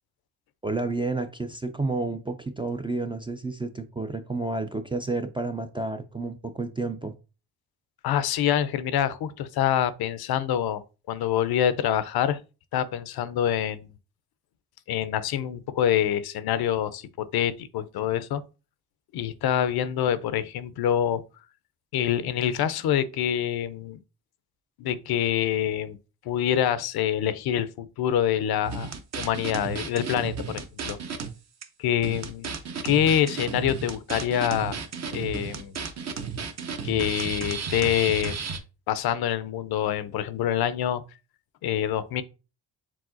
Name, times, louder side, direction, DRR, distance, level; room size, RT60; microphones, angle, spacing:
voice 1, 0.6-7.1, right 3 dB, 15° right, 0.3 m, -30 dB
voice 2, 8.0-12.4 12.7-13.9 14.9-18.4 19.1-21.2 21.9-24.0 24.8-26.0 26.3-31.0 31.8-32.5 32.8-34.8 35.1-35.8 36.8-38.3 38.9-41.0 41.6-42.2, left 10 dB, 60° left, 0.5 m, -26 dB
sound 1, 28.6-31.3 31.6-31.7 32.0-38.6, right 5 dB, 40° right, 0.7 m, -34 dB
4.7 x 3.6 x 2.5 m
supercardioid pair, 65°, 42 cm